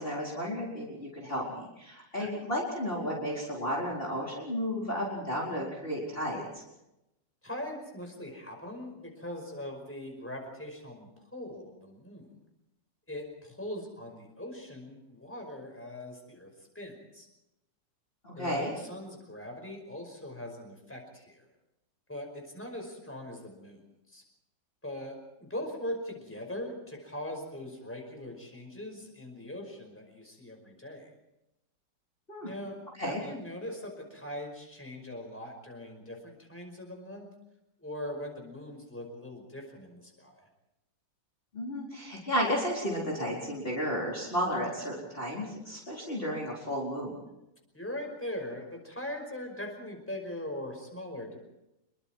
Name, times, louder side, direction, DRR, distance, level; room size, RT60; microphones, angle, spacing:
voice 1, 0.0-6.6 18.2-18.7 32.3-32.5 33.0-33.2 41.5-47.2, equal, 25° left, -4 dB, 4.7 m, -33 dB
voice 2, 7.4-12.4 13.1-16.5 16.8-17.3 18.4-21.5 22.1-23.8 24.1-24.2 24.8-31.1 32.4-32.8 33.1-37.3 37.8-40.4 47.7-51.4, left 1 dB, 5° left, 3 dB, 5.3 m, -41 dB
27.0 x 23.0 x 4.6 m, 0.89 s
omnidirectional pair, 2.1 m